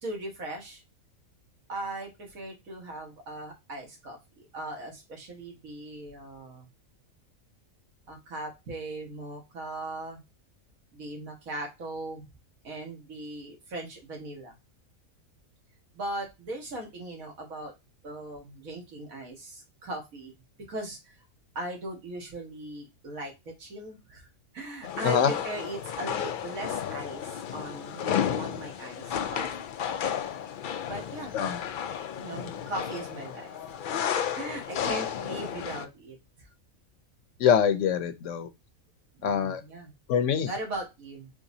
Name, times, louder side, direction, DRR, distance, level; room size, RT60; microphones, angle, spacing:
voice 1, 0.0-0.8 1.7-6.7 8.1-10.2 10.9-12.3 12.6-14.5 15.9-17.7 18.0-20.3 20.7-21.2 21.6-24.3 24.5-29.5 30.9-31.3 32.1-33.5 34.3-36.5 39.2-39.9 40.5-41.3, right 1 dB, 80° right, 1.9 m, -39 dB
sound 1, 24.8-35.9, left 8 dB, 85° left, 0.4 m, -33 dB
voice 2, 37.4-38.5 39.2-39.6 40.1-40.5, left 8 dB, 70° left, 0.9 m, -24 dB
4.7 x 3.3 x 2.6 m
omnidirectional pair, 1.4 m